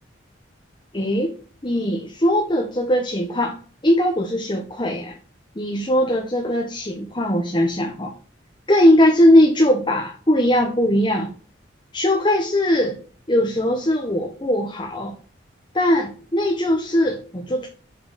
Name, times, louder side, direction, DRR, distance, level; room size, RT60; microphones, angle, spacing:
voice 1, 0.9-1.3 1.6-3.6 3.8-5.2 5.6-8.1 8.7-11.3 11.9-13.0 13.3-15.2 15.7-17.7, left 1 dB, 25° left, 2 dB, 1.0 m, -19 dB
7.4 x 5.7 x 3.8 m, 0.40 s
head